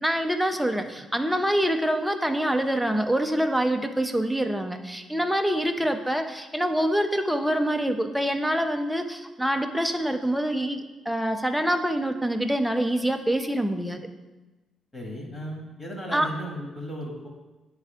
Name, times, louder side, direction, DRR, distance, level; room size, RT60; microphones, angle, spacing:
voice 1, 0.0-14.0 16.1-16.3, right 1 dB, ahead, 5 dB, 0.6 m, -25 dB
voice 2, 14.9-17.3, equal, 25° left, 0 dB, 1.7 m, -35 dB
9.6 x 3.6 x 3.4 m, 1.1 s
cardioid pair, 90°, 0 cm